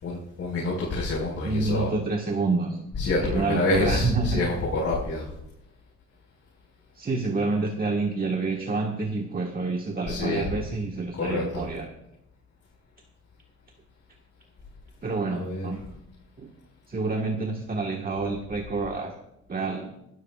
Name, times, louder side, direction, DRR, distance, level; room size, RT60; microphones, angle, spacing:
voice 1, 0.0-1.9 2.9-5.3 10.1-10.5 11.2-11.6 15.3-15.7, left 2 dB, 55° left, -5 dB, 4.9 m, -27 dB
voice 2, 1.4-2.8 3.2-4.4 6.9-11.9 15.0-15.8 16.4-16.5 16.9-19.1 19.5-19.9, right 3 dB, 30° right, 2 dB, 1.5 m, -28 dB
24.0 x 12.5 x 2.4 m, 0.82 s
cardioid pair, 90°, 30 cm